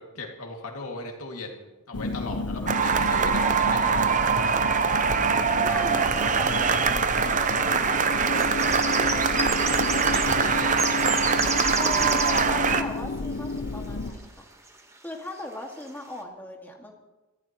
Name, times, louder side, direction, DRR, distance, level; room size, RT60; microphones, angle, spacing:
voice 1, 0.0-4.2 9.1-10.6, left 3 dB, 80° left, 1 dB, 2.3 m, -39 dB
sound 1, 1.9-14.1, left 3 dB, 55° left, 0.8 m, -32 dB
sound 2, 2.7-12.8, right 6 dB, 35° right, 0.7 m, -23 dB
voice 2, 5.6-8.5 11.8-14.5 15.0-16.9, left 1 dB, 10° left, 0 dB, 1.9 m, -38 dB
sound 3, 6.2-6.3 6.5-7.1 7.9-12.6 13.5-13.6 14.1-14.2 14.7-15.0 15.4-15.5 15.7-16.0, right 3 dB, 15° right, 1.2 m, -32 dB
24.0 x 14.5 x 3.0 m, 1.1 s
head